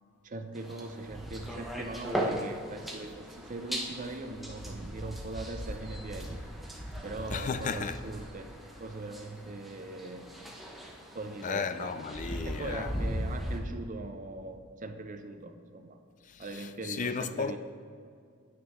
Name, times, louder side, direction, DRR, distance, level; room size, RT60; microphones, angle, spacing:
voice 1, 0.2-6.4 7.0-8.5 8.8-10.3 11.1-12.0 12.3-16.0 16.4-17.6, right 2 dB, 35° right, 0.5 m, -40 dB
sound 1, 0.5-13.6, equal, ahead, 0.8 m, -38 dB
voice 2, 7.3-8.0 11.4-13.1 16.3-17.6, left 5 dB, 35° left, 0.3 m, -34 dB
9.5 x 8.5 x 3.1 m
head